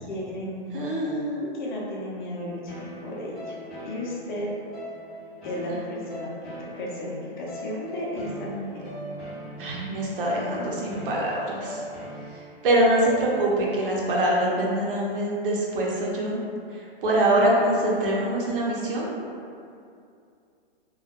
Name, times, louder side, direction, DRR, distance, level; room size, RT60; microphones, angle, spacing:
voice 1, 0.0-0.7 1.5-3.6 3.8-4.5 5.4-6.3 6.8-8.8, left 1 dB, 50° left, -4 dB, 0.6 m, -33 dB
voice 2, 0.7-1.5 5.7-5.8 9.6-11.8 12.3-16.4 16.7-19.1, right 1 dB, 60° right, -4 dB, 0.6 m, -24 dB
sound 1, 2.7-13.6, equal, ahead, 0.4 m, -41 dB
2.3 x 2.1 x 2.7 m, 2.4 s
hypercardioid pair, 160°, 31 cm